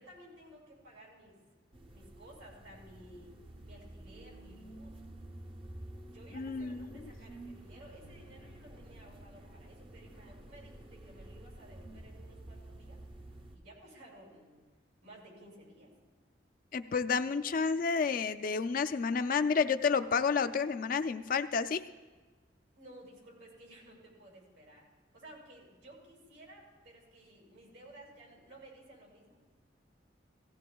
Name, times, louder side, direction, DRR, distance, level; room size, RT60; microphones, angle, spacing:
voice 1, 0.0-1.4 1.9-3.4 3.6-5.0 6.0-13.0 13.5-14.6 15.0-15.9 22.7-24.9 25.1-29.4, right 1 dB, 90° right, -3 dB, 4.8 m, -55 dB
sound 1, 1.7-13.6, right 1 dB, 30° right, 0.6 m, -50 dB
voice 2, 6.3-6.9 16.7-21.9, left 5 dB, 45° left, 11 dB, 0.4 m, -30 dB
17.0 x 16.0 x 2.3 m, 1.3 s
head